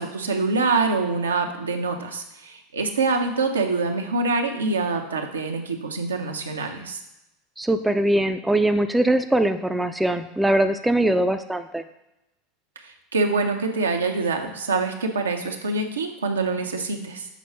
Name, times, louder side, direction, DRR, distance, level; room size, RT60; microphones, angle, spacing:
voice 1, 0.0-7.0 12.8-17.3, right 3 dB, 85° right, 3 dB, 0.8 m, -25 dB
voice 2, 7.6-11.8, right 1 dB, 5° right, 7 dB, 0.5 m, -21 dB
7.1 x 4.6 x 4.4 m, 0.92 s
figure-of-eight pair, 80°, 0 cm